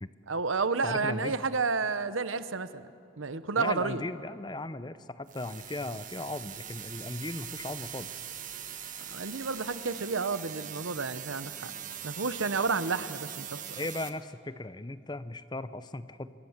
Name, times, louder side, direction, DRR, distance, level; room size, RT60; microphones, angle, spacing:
voice 1, 0.3-2.9 3.2-4.0 9.1-11.7 12.0-13.8, right 4 dB, 75° right, 13 dB, 0.9 m, -31 dB
voice 2, 0.8-1.4 3.6-8.2 13.8-16.3, left 2 dB, 20° left, 13 dB, 0.6 m, -37 dB
sound 1, 5.3-14.1, right 9 dB, 40° right, 1.3 m, -42 dB
25.5 x 21.0 x 7.3 m, 2.5 s
head